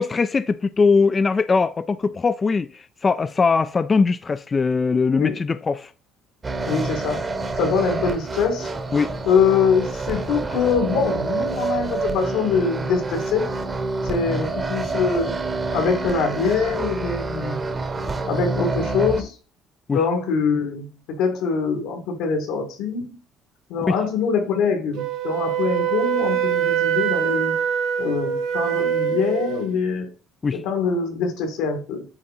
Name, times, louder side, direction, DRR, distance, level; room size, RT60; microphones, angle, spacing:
voice 1, 0.0-5.9 8.9-9.1 19.9-20.0 23.9-24.0 30.4-30.6, left 4 dB, 25° left, 0.3 m, -21 dB
sound 1, 6.4-19.2, right 3 dB, 20° right, 0.9 m, -27 dB
voice 2, 6.6-7.3 7.6-8.7 9.3-13.5 14.0-15.4 15.7-17.6 18.3-19.3 19.9-23.2 23.7-27.6 28.0-30.1 30.5-32.0, left 5 dB, 85° left, 2.4 m, -23 dB
Wind instrument woodwind instrument, 25.0-29.7, right 9 dB, 85° right, 1.6 m, -23 dB
8.9 x 3.8 x 4.3 m
cardioid pair, 140°, 0 cm